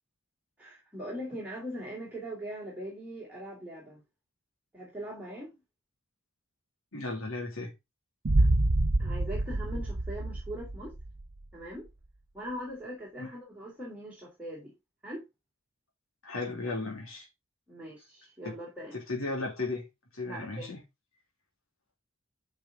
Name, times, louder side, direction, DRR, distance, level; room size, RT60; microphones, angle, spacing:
voice 1, 0.6-4.0 4.7-5.6 9.0-10.9 11.5-11.9 12.3-14.7 15.0-15.2 17.7-19.0 20.2-20.7, equal, 5° right, 3.3 m, -41 dB
voice 2, 6.9-7.7 13.2-13.3 16.2-17.3 18.9-19.8 20.1-20.8, left 3 dB, 80° left, 2.6 m, -35 dB
Boom, 8.2-11.2, right 2 dB, 85° right, 0.9 m, -27 dB
9.4 x 5.6 x 3.7 m
head